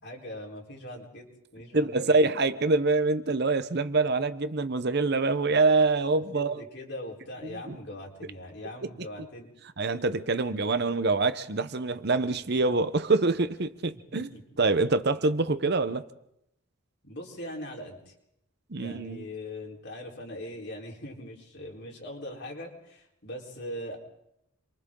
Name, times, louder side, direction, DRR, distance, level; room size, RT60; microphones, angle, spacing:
voice 1, 0.0-1.3 1.5-2.3 6.3-9.5 9.9-10.0 14.1-14.4 15.0-15.1 17.0-18.1 18.7-24.0, left 1 dB, 50° left, 4.1 m, -41 dB
voice 2, 1.7-6.6 7.5-7.8 8.8-8.9 9.8-14.3 14.6-16.0 18.7-19.3, right 3 dB, 50° right, 0.8 m, -25 dB
29.5 x 24.0 x 3.8 m
head